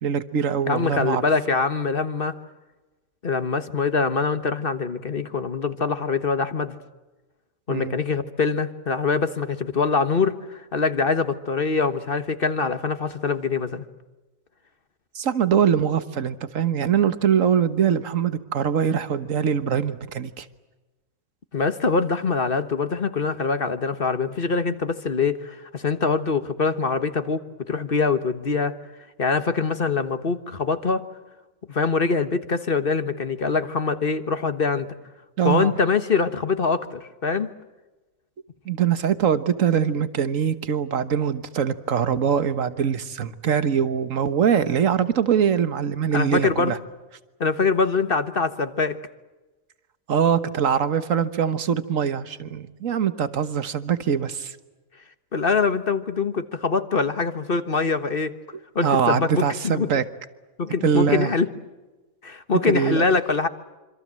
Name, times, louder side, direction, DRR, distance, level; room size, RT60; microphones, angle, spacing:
voice 1, 0.0-1.2 7.7-8.0 15.1-20.4 35.4-35.7 38.6-46.8 50.1-54.5 58.8-60.0 60.8-61.3 62.7-63.0, right 8 dB, 75° right, 12 dB, 1.7 m, -23 dB
voice 2, 0.7-2.3 3.2-6.7 7.7-13.8 21.5-28.8 29.2-31.0 31.7-34.9 35.4-37.5 46.1-46.8 47.4-49.0 55.3-58.3 58.7-59.9 60.6-61.5 62.2-63.5, left 4 dB, 45° left, 10 dB, 1.5 m, -24 dB
26.5 x 26.0 x 7.7 m, 1.1 s
omnidirectional pair, 1.4 m